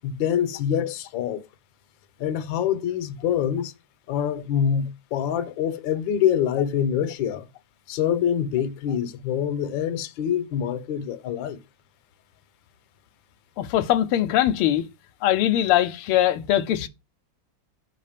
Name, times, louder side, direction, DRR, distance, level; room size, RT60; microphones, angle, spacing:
voice 1, 0.0-1.4 2.2-3.7 4.1-7.5 7.9-11.6, left 9 dB, 70° left, 1.4 m, -25 dB
voice 2, 13.6-14.9 15.2-16.9, left 12 dB, 85° left, 1.5 m, -21 dB
6.0 x 4.3 x 5.0 m
omnidirectional pair, 2.4 m